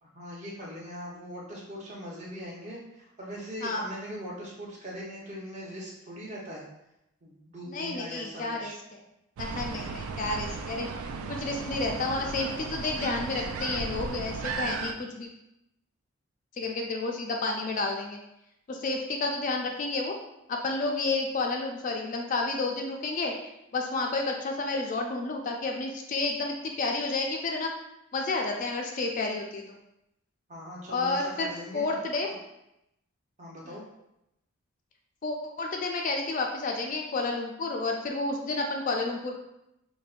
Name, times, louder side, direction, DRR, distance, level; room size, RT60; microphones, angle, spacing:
voice 1, 0.0-6.6 7.2-8.8 30.5-32.0 32.3-32.4 33.4-33.8, equal, 35° right, -4 dB, 0.7 m, -41 dB
voice 2, 7.7-8.7 9.4-10.9 11.3-15.3 16.6-18.2 18.7-20.2 20.5-27.7 28.1-29.8 30.9-31.5 31.7-32.3 35.2-39.3, left 3 dB, 40° left, 2 dB, 0.3 m, -30 dB
sound 1, 9.4-14.9, right 4 dB, 85° right, 0.3 m, -35 dB
4.9 x 2.1 x 2.4 m, 0.85 s
head